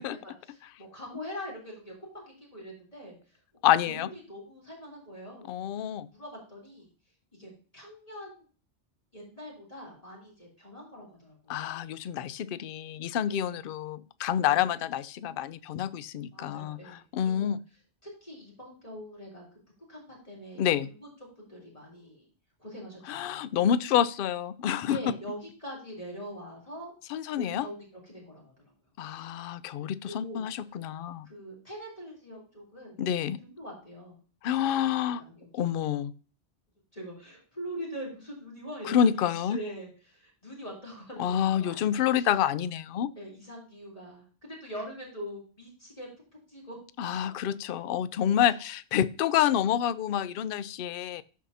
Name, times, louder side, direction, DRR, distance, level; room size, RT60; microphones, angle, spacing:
voice 1, 0.2-3.4 3.9-6.9 7.3-8.4 9.1-11.7 13.3-13.6 14.5-14.8 16.3-17.5 18.0-19.6 19.9-20.6 21.0-21.1 21.4-22.3 22.6-23.7 24.7-26.9 27.4-28.5 30.1-30.4 31.2-33.0 33.4-34.2 34.8-34.9 35.1-35.7 36.9-39.1 39.5-42.3 43.2-46.8 48.4-48.5, equal, 30° left, -3 dB, 3.5 m, -43 dB
voice 2, 3.6-4.1 5.5-6.1 11.5-17.6 20.6-20.9 23.1-25.0 27.1-27.7 29.0-31.3 33.0-33.4 34.4-35.2 35.5-36.1 38.9-39.6 41.2-43.1 47.0-51.2, left 10 dB, 60° left, 16 dB, 0.6 m, -28 dB
14.0 x 4.7 x 2.7 m, 0.37 s
omnidirectional pair, 1.2 m